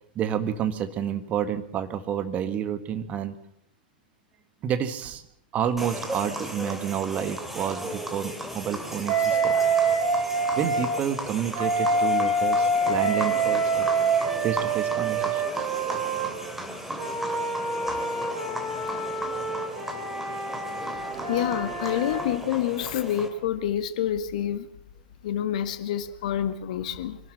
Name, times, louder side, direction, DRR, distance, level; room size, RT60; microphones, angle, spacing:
voice 1, 0.2-3.4 4.6-5.2 5.5-9.6 10.5-13.9 14.4-15.4 18.0-18.1, right 9 dB, 30° right, 11 dB, 1.7 m, -29 dB
sound 1, 5.8-23.3, right 1 dB, 5° right, 2.9 m, -36 dB
Wind instrument woodwind instrument, 9.1-10.9 11.5-16.3 17.0-22.2, right 3 dB, 50° right, 6.9 m, -26 dB
voice 2, 21.3-24.7 25.2-27.2, left 10 dB, 55° left, 11 dB, 1.7 m, -27 dB
24.0 x 12.5 x 8.9 m, 0.71 s
figure-of-eight pair, 95°, 5 cm